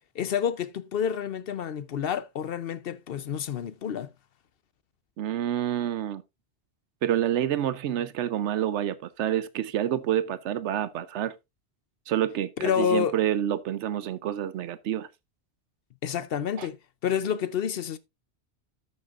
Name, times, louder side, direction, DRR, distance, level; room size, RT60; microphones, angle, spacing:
voice 1, 0.1-4.1 12.6-13.2 16.0-16.8 17.0-18.0, left 8 dB, 65° left, 0.8 m, -29 dB
voice 2, 5.2-6.2 7.0-11.3 12.1-15.1 16.6-16.7, right 11 dB, 90° right, 0.9 m, -28 dB
13.5 x 6.5 x 2.5 m
omnidirectional pair, 1.1 m